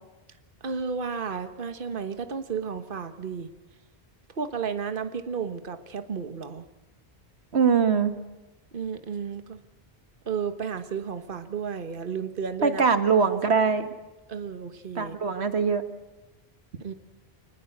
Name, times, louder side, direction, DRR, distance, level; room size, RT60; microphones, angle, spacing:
voice 1, 0.6-3.5 4.3-6.7 8.7-9.6 10.2-12.8 14.3-15.2 16.8-16.9, right 6 dB, 55° right, 10 dB, 1.5 m, -33 dB
voice 2, 7.5-8.1 12.6-13.9 15.0-15.8, right 5 dB, 90° right, 10 dB, 1.9 m, -22 dB
25.0 x 20.0 x 8.0 m, 1.1 s
omnidirectional pair, 1.1 m